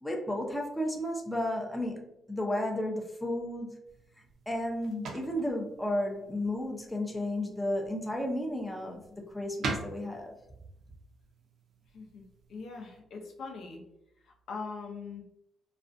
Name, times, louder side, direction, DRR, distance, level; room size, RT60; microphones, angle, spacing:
voice 1, 0.0-3.7 4.5-9.0 9.3-10.3, left 1 dB, 5° left, 0 dB, 0.4 m, -33 dB
sound 1, 3.8-13.0, right 3 dB, 65° right, 0.5 m, -44 dB
voice 2, 12.5-13.8 14.5-15.2, left 4 dB, 70° left, 1 dB, 0.5 m, -41 dB
2.4 x 2.1 x 2.5 m, 0.82 s
cardioid pair, 110°, 0 cm